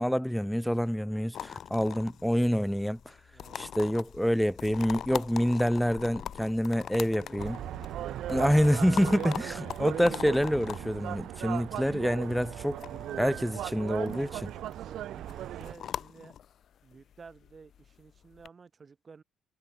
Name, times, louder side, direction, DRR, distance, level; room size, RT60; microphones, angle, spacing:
voice 1, 0.0-3.1 3.6-7.5 8.3-12.8 13.1-14.5, equal, ahead, 0.7 m, -27 dB
sound 1, 1.3-18.5, left 9 dB, 60° left, 2.5 m, -43 dB
voice 2, 3.3-3.7 7.1-8.3 14.6-16.4 16.8-19.2, right 5 dB, 35° right, 6.9 m, -52 dB
sound 2, 7.4-15.7, right 12 dB, 70° right, 2.7 m, -37 dB
cardioid pair, 90°, 0 cm